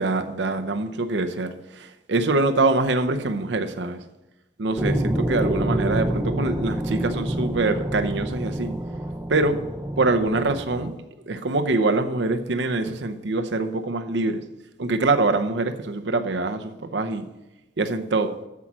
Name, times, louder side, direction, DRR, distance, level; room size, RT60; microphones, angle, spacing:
voice 1, 0.0-4.0 4.6-8.7 9.3-9.6 10.0-10.9 11.3-14.4 14.8-17.3 17.8-18.3, right 2 dB, 70° right, 7 dB, 0.7 m, -24 dB
sound 1, 4.8-10.9, right 1 dB, 10° right, 0.6 m, -27 dB
8.3 x 7.3 x 6.2 m, 0.99 s
head